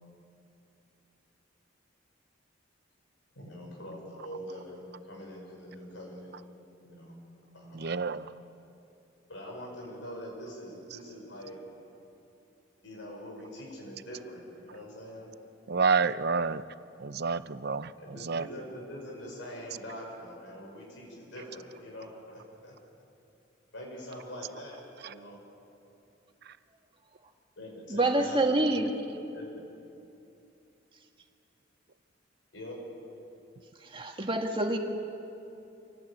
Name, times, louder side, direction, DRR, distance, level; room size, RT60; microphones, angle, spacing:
voice 1, 3.4-6.3 6.8-7.2 7.5-8.0 9.3-11.6 12.8-15.3 18.0-22.7 23.7-25.4 27.6-28.8 29.3-29.6 32.5-32.8, equal, 80° left, -2 dB, 5.9 m, -44 dB
voice 2, 7.7-8.2 15.7-16.6 17.0-17.9 18.3-18.5, right 5 dB, 60° right, 14 dB, 0.7 m, -28 dB
voice 3, 27.9-28.9 33.9-34.8, right 2 dB, 30° right, 3 dB, 2.0 m, -26 dB
26.5 x 18.0 x 8.8 m, 2.8 s
head